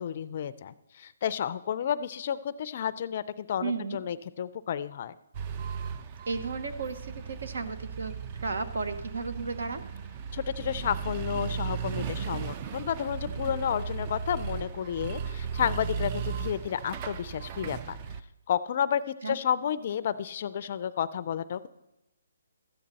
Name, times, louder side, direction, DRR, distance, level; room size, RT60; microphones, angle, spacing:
voice 1, 0.0-5.2 10.3-18.0 18.5-21.7, left 9 dB, 40° left, 16 dB, 0.4 m, -31 dB
voice 2, 3.6-4.0 6.3-9.8 19.2-19.4, right 4 dB, 70° right, 9 dB, 1.0 m, -34 dB
sound 1, 5.3-18.2, right 6 dB, 25° right, 0.4 m, -36 dB
13.0 x 8.7 x 4.0 m, 0.92 s
hypercardioid pair, 165°, 0 cm